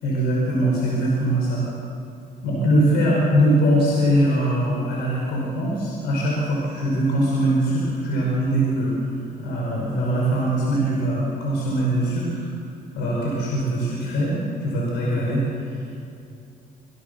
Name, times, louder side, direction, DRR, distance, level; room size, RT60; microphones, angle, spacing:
voice 1, 0.0-1.6 2.4-9.0 9.4-12.4 12.9-15.9, right 1 dB, 80° left, -4 dB, 5.5 m, -22 dB
25.5 x 17.0 x 7.0 m, 2.6 s
cardioid pair, 110°, 17 cm